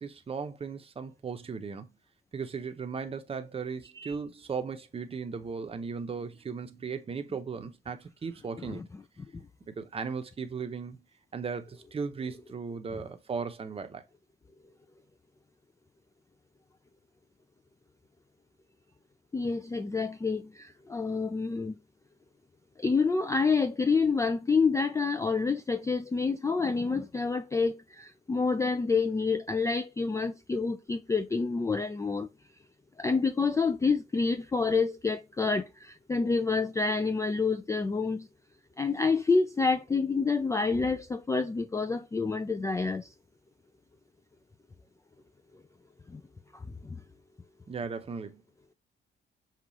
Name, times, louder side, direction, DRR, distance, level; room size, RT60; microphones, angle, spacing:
voice 1, 0.0-1.9 2.3-8.9 9.7-11.1 11.3-14.0 47.7-48.4, right 5 dB, 30° right, 0.7 m, -37 dB
voice 2, 19.3-21.7 22.8-32.3 33.0-38.3 38.8-43.0 46.1-46.2, left 4 dB, 15° left, 0.3 m, -28 dB
5.4 x 2.4 x 3.0 m
cardioid pair, 90°, 20 cm